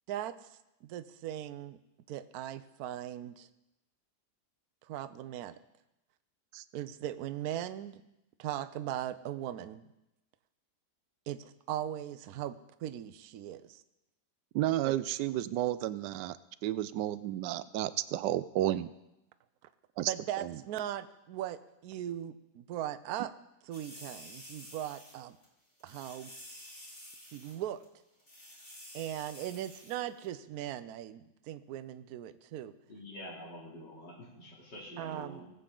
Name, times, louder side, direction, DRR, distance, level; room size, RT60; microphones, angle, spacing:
voice 1, 0.1-1.8 2.1-3.5 4.8-5.6 6.7-8.0 8.4-9.9 11.3-13.8 14.8-14.9 20.1-23.3 23.7-25.4 25.8-26.3 27.3-27.8 28.9-32.7 35.0-35.4, right 12 dB, 70° right, 12 dB, 1.0 m, -39 dB
voice 2, 14.5-16.4 16.6-18.9 20.0-20.6, right 13 dB, 90° right, 15 dB, 1.2 m, -32 dB
sound 1, 23.7-25.2 25.4-25.5 25.8-27.6 27.8-27.9 28.2-30.0 30.2-30.3, left 1 dB, 35° left, 3.0 m, -50 dB
voice 3, 32.9-35.5, equal, 85° left, -4 dB, 3.7 m, -46 dB
19.5 x 8.1 x 3.8 m, 0.93 s
omnidirectional pair, 1.8 m